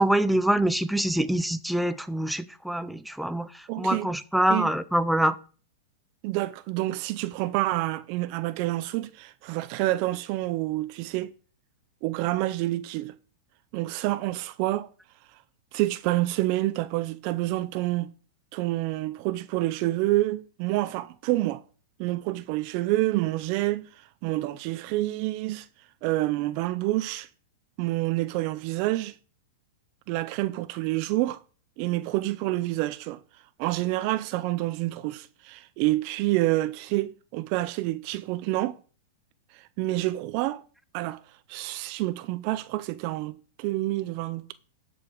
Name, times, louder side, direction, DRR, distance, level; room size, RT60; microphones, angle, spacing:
voice 1, 0.0-5.4, right 1 dB, ahead, 0.6 m, -25 dB
voice 2, 3.7-4.1 4.5-4.7 6.2-11.3 12.0-13.1 13.7-14.9 15.7-18.1 18.5-21.6 22.0-25.7 26.0-27.3 27.8-29.2 30.1-31.4 31.8-33.2 33.6-38.8 39.5-40.6 40.9-41.2 41.5-44.5, right 17 dB, 50° right, 0.5 m, -28 dB
13.0 x 5.0 x 5.2 m
hypercardioid pair, 135°, 0 cm